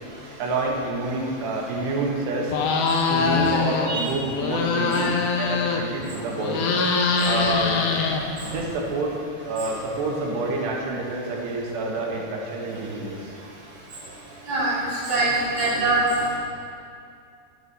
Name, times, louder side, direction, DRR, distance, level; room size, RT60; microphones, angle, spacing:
voice 1, 0.4-2.5 3.1-5.1 5.4-6.7 7.2-7.8 8.4-9.1 9.5-13.3, right 3 dB, 85° right, -1 dB, 3.4 m, -28 dB
sound 1, 2.5-3.9 4.2-6.0 6.4-8.6, left 5 dB, 80° left, 1.8 m, -23 dB
voice 2, 14.5-14.8 15.1-16.0, right 3 dB, 30° right, -8 dB, 2.4 m, -23 dB
11.0 x 9.7 x 4.1 m, 2.4 s
omnidirectional pair, 4.7 m